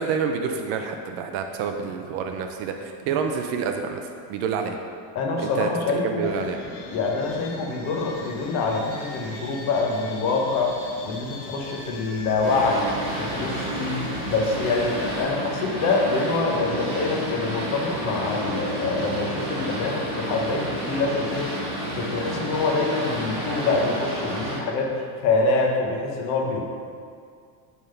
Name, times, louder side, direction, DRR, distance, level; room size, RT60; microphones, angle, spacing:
voice 1, 0.0-4.0 4.3-4.8 5.4-5.7 5.9-6.6, right 6 dB, 50° right, 5 dB, 0.5 m, -28 dB
voice 2, 5.1-6.4 6.9-10.8 11.0-12.9 13.2-21.5 22.0-26.6, left 3 dB, 35° left, 0 dB, 0.8 m, -25 dB
sound 1, 6.2-15.2, left 2 dB, 75° left, 1.5 m, -40 dB
Boat Water vehicle, 12.4-24.6, equal, 15° right, 1.5 m, -30 dB
6.9 x 3.6 x 5.5 m, 2.2 s
cardioid pair, 175°, 45 cm